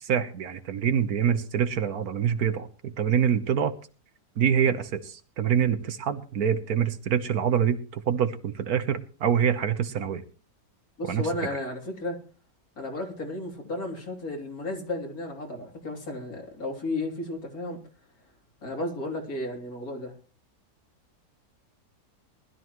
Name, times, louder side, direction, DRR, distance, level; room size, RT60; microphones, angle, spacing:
voice 1, 0.0-3.7 4.4-10.2 11.0-11.3, right 8 dB, 70° right, 11 dB, 1.5 m, -25 dB
voice 2, 11.0-12.2 12.8-17.8 18.6-20.1, left 2 dB, 65° left, 2 dB, 3.6 m, -33 dB
20.0 x 13.0 x 3.1 m, 0.37 s
omnidirectional pair, 1.7 m